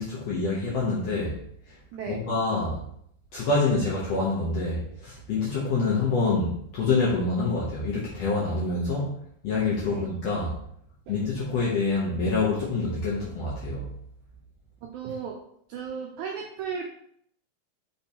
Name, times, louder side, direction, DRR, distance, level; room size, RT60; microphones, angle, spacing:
voice 1, 0.0-1.4 2.1-2.8 3.3-9.2 9.4-10.6 11.1-13.9, left 3 dB, 75° left, -6 dB, 1.5 m, -26 dB
voice 2, 14.8-15.4 15.7-16.9, right 6 dB, 85° right, 1 dB, 1.7 m, -35 dB
5.2 x 3.4 x 2.8 m, 0.69 s
omnidirectional pair, 3.9 m